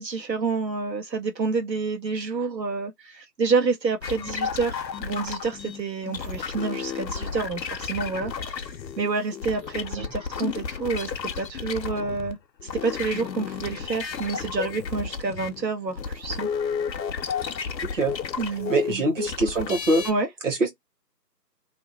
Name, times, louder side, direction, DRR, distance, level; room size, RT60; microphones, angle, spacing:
voice 1, 0.0-12.4 12.8-16.5 18.4-19.0 20.0-20.3, right 4 dB, 85° right, 1.1 m, -28 dB
sound 1, 4.0-12.3 12.6-20.1, left 6 dB, 85° left, 0.6 m, -32 dB
voice 2, 18.7-20.0 20.4-20.7, right 2 dB, 50° right, 1.2 m, -23 dB
2.7 x 2.1 x 2.7 m
figure-of-eight pair, 160°, 50 cm